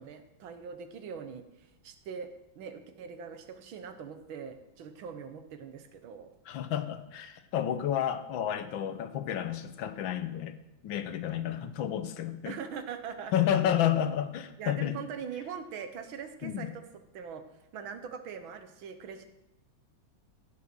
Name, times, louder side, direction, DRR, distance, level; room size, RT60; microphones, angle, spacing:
voice 1, 0.0-2.3 2.6-6.3 11.3-11.7 12.5-13.8 14.6-16.8 17.1-17.4 17.7-19.3, right 6 dB, 75° right, 8 dB, 1.7 m, -42 dB
voice 2, 6.5-10.5 10.8-12.6 13.3-15.0 16.4-16.7, left 10 dB, 75° left, 11 dB, 1.5 m, -30 dB
15.0 x 5.9 x 6.1 m, 0.88 s
omnidirectional pair, 2.3 m